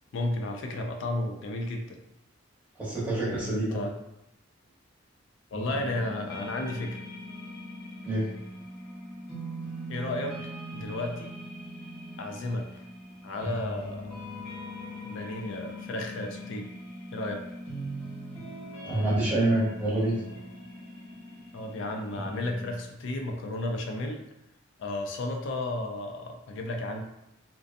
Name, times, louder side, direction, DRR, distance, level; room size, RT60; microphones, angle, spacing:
voice 1, 0.1-2.0 3.2-3.9 5.5-7.0 9.9-10.4 10.7-11.3 12.2-12.7 13.2-14.2 15.0-16.7 17.1-17.4 21.5-24.2 24.8-27.0, left 2 dB, 65° left, 3 dB, 0.4 m, -33 dB
voice 2, 2.8-3.8 8.0-8.3 18.8-20.2, right 1 dB, 10° right, -10 dB, 0.9 m, -26 dB
sound 1, 5.5-22.8, equal, 10° left, 1.1 m, -41 dB
2.5 x 2.1 x 2.5 m, 0.86 s
head